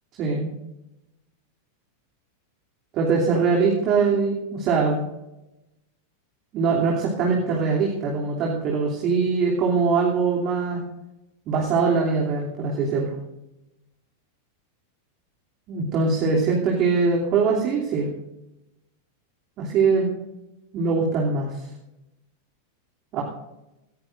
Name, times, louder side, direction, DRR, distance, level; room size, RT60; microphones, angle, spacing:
voice 1, 0.2-0.5 2.9-5.0 6.5-10.8 11.5-13.1 15.7-18.1 19.6-20.1 20.7-21.5 23.1-23.2, right 4 dB, 35° right, -2 dB, 2.9 m, -22 dB
18.5 x 17.0 x 2.6 m, 0.91 s
figure-of-eight pair, 90°, 0 cm